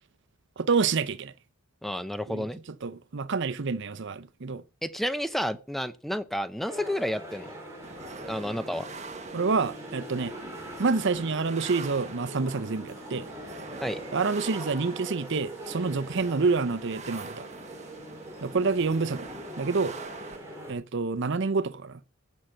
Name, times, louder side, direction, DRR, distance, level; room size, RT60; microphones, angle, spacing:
voice 1, 0.6-1.3 2.3-2.5 2.8-4.6 9.3-10.3 10.8-13.3 14.1-17.5 18.4-19.3 19.6-19.9 20.7-22.0, right 4 dB, 60° right, 0.6 m, -28 dB
voice 2, 1.8-2.6 4.8-7.5 8.2-8.9 13.8-14.0, equal, ahead, 0.7 m, -31 dB
sound 1, 6.7-20.7, equal, 15° right, 5.1 m, -42 dB
sound 2, 7.8-20.4, right 3 dB, 35° right, 1.3 m, -44 dB
15.5 x 6.4 x 5.6 m
head